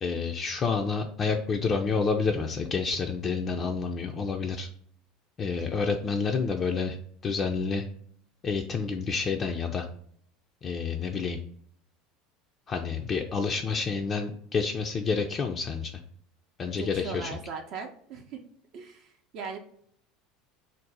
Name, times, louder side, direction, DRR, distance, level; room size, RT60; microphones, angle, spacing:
voice 1, 0.0-4.7 5.4-7.0 7.2-7.8 8.4-9.9 10.6-11.4 12.7-15.9 16.6-17.4, left 5 dB, 35° left, 3 dB, 0.3 m, -29 dB
voice 2, 16.8-18.4 18.7-19.1 19.3-19.6, right 5 dB, 60° right, 2 dB, 0.5 m, -38 dB
2.6 x 2.0 x 3.9 m, 0.63 s
hypercardioid pair, 85°, 0 cm